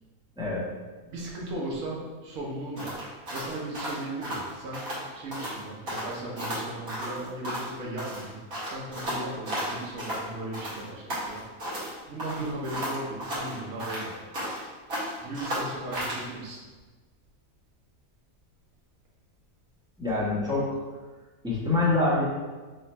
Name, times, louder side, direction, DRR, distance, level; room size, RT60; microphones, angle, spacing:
voice 1, 0.4-0.7 20.0-20.8 21.4-22.2, left 2 dB, 5° right, -7 dB, 0.8 m, -25 dB
voice 2, 1.0-4.9 5.1-8.4 8.7-11.4 11.8-14.1 15.2-16.6, right 1 dB, 70° right, -3 dB, 1.4 m, -37 dB
sound 1, 2.8-5.0 5.3-5.6 5.9-7.7 8.0-10.2 10.5-11.9 12.2-14.6 14.9-16.2, equal, 90° right, 1.7 m, -34 dB
4.2 x 2.5 x 4.1 m, 1.3 s
omnidirectional pair, 1.5 m